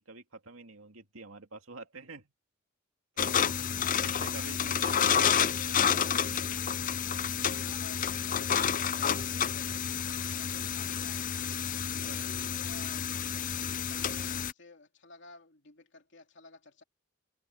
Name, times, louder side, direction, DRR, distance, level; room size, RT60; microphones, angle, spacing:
voice 1, 0.0-2.3 3.1-3.5 4.0-6.2 11.7-12.3, right 3 dB, 90° right, 2.6 m, -47 dB
sound 1, 3.2-14.5, left 8 dB, 40° left, 0.6 m, -30 dB
voice 2, 3.5-5.5 7.6-11.3 11.9-13.0 13.3-16.8, left 3 dB, 60° left, 3.2 m, -53 dB
head